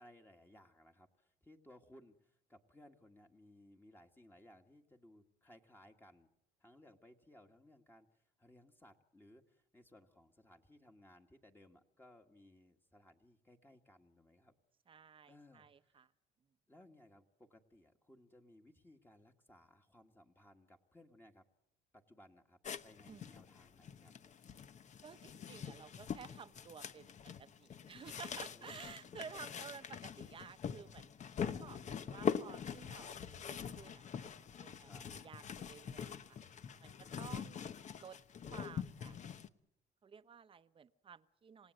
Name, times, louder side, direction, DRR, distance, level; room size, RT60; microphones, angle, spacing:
voice 1, 0.0-6.3 6.6-14.5 15.3-16.0 16.7-21.4 21.9-24.1 28.4-29.4 34.8-35.1, left 1 dB, 10° left, 3 dB, 1.7 m, -63 dB
voice 2, 14.9-16.1 23.1-23.2 25.0-31.1 31.5-36.4 36.8-37.7 38.0-38.2 38.5-39.2 40.0-41.7, right 6 dB, 30° right, 12 dB, 0.9 m, -54 dB
sound 1, 22.6-39.5, left 7 dB, 45° left, 1.0 m, -44 dB
27.5 x 18.5 x 7.8 m, 0.83 s
cardioid pair, 110°, 17 cm